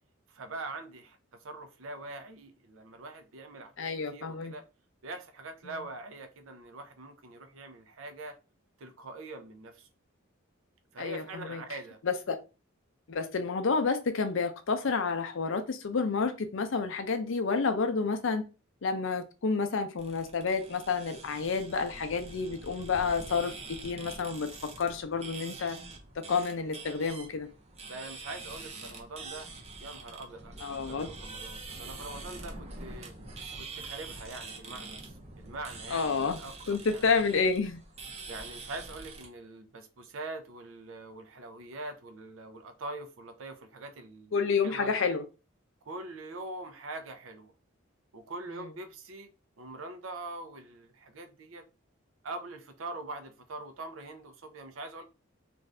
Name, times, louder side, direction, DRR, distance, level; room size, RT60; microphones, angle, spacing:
voice 1, 0.3-3.7 4.1-4.7 5.0-8.4 8.8-9.9 10.9-12.0 27.9-29.5 29.8-33.1 33.5-37.0 38.3-44.3 44.6-45.2 45.8-47.5 48.1-49.3 49.6-51.6 52.2-55.0, right 2 dB, 75° right, 0.6 m, -43 dB
voice 2, 3.8-4.5 11.0-11.6 12.0-12.4 13.1-18.5 18.8-24.5 24.8-25.8 26.3-27.5 30.6-31.1 35.9-36.4 36.7-37.8 44.3-45.2, left 5 dB, 70° left, 0.5 m, -29 dB
sound 1, 20.0-39.3, right 3 dB, 30° right, 0.7 m, -45 dB
2.5 x 2.4 x 3.2 m
head